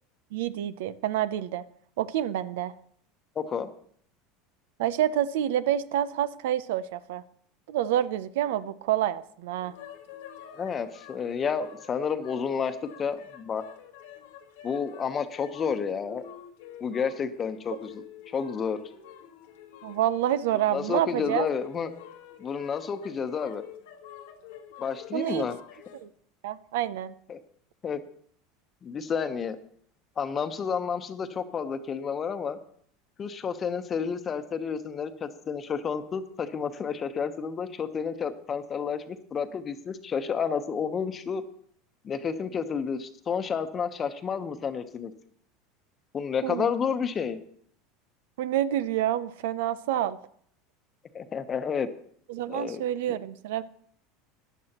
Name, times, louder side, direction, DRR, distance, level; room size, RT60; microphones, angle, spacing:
voice 1, 0.3-1.6 2.0-2.7 4.8-7.2 7.7-9.7 19.8-21.5 25.1-25.5 26.0-26.1 26.4-27.1 46.4-46.7 48.4-50.2 52.3-53.6, right 12 dB, 80° right, 15 dB, 0.5 m, -28 dB
voice 2, 3.4-3.7 10.6-13.6 14.6-16.2 16.8-18.8 20.7-21.9 22.4-23.6 24.8-25.6 27.3-27.4 27.8-28.0 28.8-29.6 30.2-32.6 33.2-41.4 42.0-45.1 46.1-47.4 51.1-51.9 52.5-52.8 53.1-53.2, left 6 dB, 30° left, 10 dB, 1.0 m, -30 dB
sound 1, 9.6-26.0, left 9 dB, 85° left, 1.3 m, -48 dB
15.5 x 11.0 x 3.0 m, 0.63 s
supercardioid pair, 115°, 0 cm